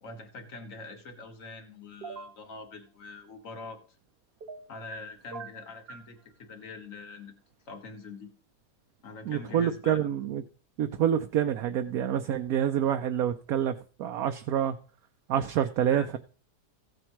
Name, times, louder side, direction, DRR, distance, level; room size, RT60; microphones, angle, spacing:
voice 1, 0.0-3.8 4.7-7.4 7.7-8.3 9.0-10.1 15.8-16.2, left 3 dB, 50° left, 5 dB, 1.8 m, -44 dB
sound 1, 2.0-2.4 4.4-5.0 5.3-6.1, right 5 dB, 45° right, 0.9 m, -42 dB
voice 2, 9.3-10.4 10.8-14.7 15.3-16.2, right 9 dB, 70° right, 7 dB, 1.0 m, -27 dB
15.5 x 7.8 x 3.1 m, 0.39 s
omnidirectional pair, 1.8 m